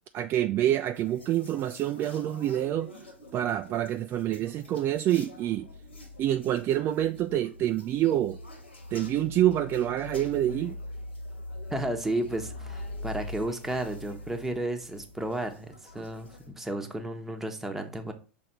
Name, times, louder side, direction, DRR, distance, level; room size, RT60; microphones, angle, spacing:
voice 1, 0.1-2.9 3.3-5.7 6.2-8.4 8.9-10.8 16.0-16.1, right 12 dB, 40° right, 0.4 m, -27 dB
sound 1, 0.9-16.5, left 2 dB, 85° left, 1.8 m, -43 dB
voice 2, 11.7-18.1, right 1 dB, 5° right, 1.1 m, -33 dB
6.3 x 3.5 x 4.3 m
hypercardioid pair, 90°, 6 cm